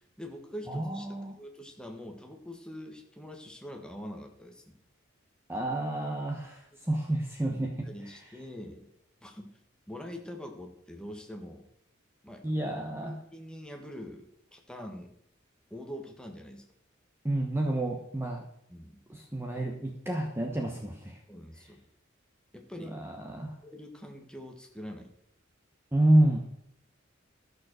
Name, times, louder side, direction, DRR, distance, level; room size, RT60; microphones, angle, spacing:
voice 1, 0.0-4.8 7.5-8.9 9.2-9.5 9.9-11.7 12.2-12.4 13.0-15.1 15.7-16.6 18.7-19.0 21.3-21.8 22.5-23.0 23.6-25.1, equal, 5° left, 2 dB, 1.6 m, -44 dB
voice 2, 0.7-1.4 5.5-7.7 12.4-13.2 17.2-18.4 19.1-21.2 22.8-23.5 25.9-26.4, right 1 dB, 10° right, 1 dB, 1.1 m, -29 dB
13.0 x 6.7 x 6.3 m, 0.76 s
head